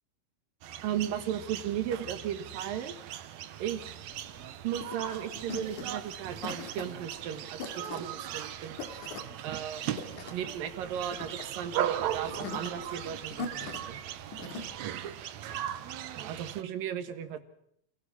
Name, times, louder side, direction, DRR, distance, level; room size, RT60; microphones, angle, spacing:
sound 1, 0.6-16.6, right 11 dB, 70° right, 2.1 m, -38 dB
voice 1, 0.8-2.9 3.6-3.8 4.6-8.8 9.4-9.9 10.2-14.0 14.4-14.7 16.1-17.4, right 9 dB, 90° right, 10 dB, 3.3 m, -36 dB
sound 2, 4.1-14.7, left 4 dB, 65° left, 3.5 m, -43 dB
28.5 x 16.0 x 6.1 m, 0.71 s
omnidirectional pair, 3.8 m